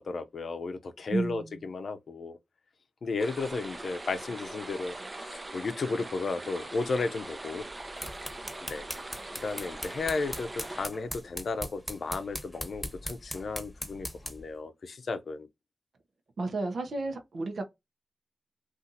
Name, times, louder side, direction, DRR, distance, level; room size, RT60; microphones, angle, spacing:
voice 1, 0.0-2.4 3.0-7.6 8.6-8.9 9.4-15.5, left 3 dB, 75° left, 0.5 m, -34 dB
voice 2, 1.1-1.7 16.4-17.6, right 3 dB, 75° right, 0.7 m, -32 dB
sound 1, 3.2-10.9, right 2 dB, 35° right, 0.6 m, -42 dB
sound 2, 7.7-14.5, equal, ahead, 1.1 m, -40 dB
2.7 x 2.4 x 3.8 m
cardioid pair, 45°, 0 cm